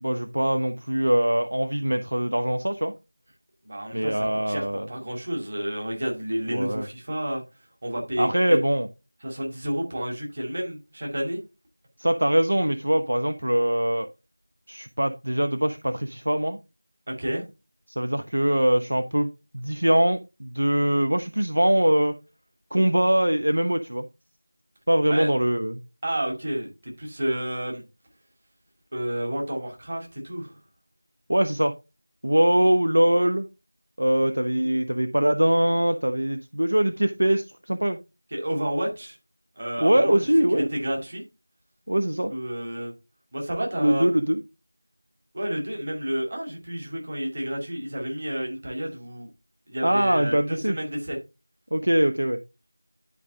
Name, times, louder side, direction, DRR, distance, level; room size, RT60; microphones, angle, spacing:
voice 1, 0.0-2.9 3.9-4.9 6.5-6.9 8.2-8.9 12.0-14.1 14.7-16.6 18.0-19.3 19.5-22.1 22.7-24.1 24.9-25.8 31.3-31.7 32.2-33.5 34.0-38.0 39.8-40.7 41.9-42.3 43.8-44.4 49.8-50.8 51.7-52.4, right 1 dB, 60° right, 6 dB, 0.9 m, -22 dB
voice 2, 3.6-7.4 7.8-8.6 9.2-11.4 17.1-17.4 25.1-25.3 26.0-27.8 28.9-30.6 38.3-39.2 39.6-40.2 40.5-41.2 42.3-42.9 43.3-44.1 45.3-49.3 49.7-51.2, right 1 dB, 25° right, 1 dB, 2.3 m, -30 dB
11.0 x 5.0 x 3.8 m, 0.26 s
figure-of-eight pair, 175°, 0 cm